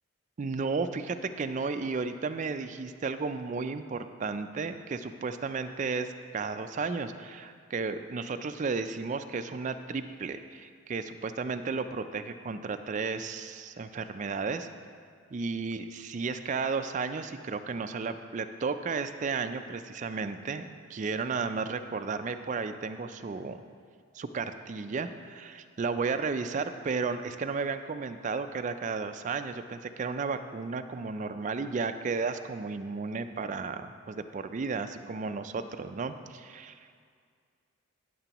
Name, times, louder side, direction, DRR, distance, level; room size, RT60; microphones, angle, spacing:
voice 1, 0.4-14.7 15.3-23.6 24.1-36.8, right 4 dB, 35° right, 9 dB, 0.3 m, -33 dB
16.0 x 6.8 x 3.0 m, 2.1 s
head